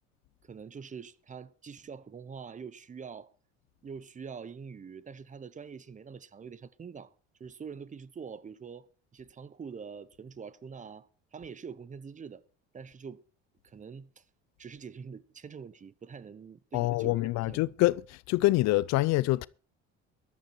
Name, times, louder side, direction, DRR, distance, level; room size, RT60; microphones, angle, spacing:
voice 1, 0.4-3.3 3.8-7.1 7.4-8.9 9.1-12.4 12.7-13.2 13.6-14.2 14.6-17.9, right 6 dB, 25° right, 0.9 m, -45 dB
voice 2, 16.7-19.5, left 18 dB, 65° left, 0.5 m, -26 dB
14.5 x 12.0 x 4.4 m
cardioid pair, 105°, 29 cm